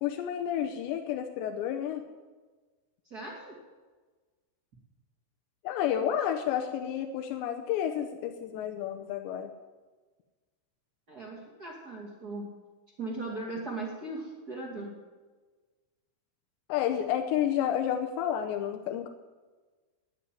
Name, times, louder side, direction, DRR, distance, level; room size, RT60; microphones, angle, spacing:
voice 1, 0.0-2.0 5.6-9.5 16.7-19.1, left 10 dB, 80° left, 4 dB, 2.8 m, -30 dB
voice 2, 3.0-3.6 11.1-12.5 13.0-14.9, right 2 dB, 40° right, -2 dB, 1.4 m, -38 dB
12.0 x 9.6 x 9.1 m, 1.3 s
omnidirectional pair, 5.7 m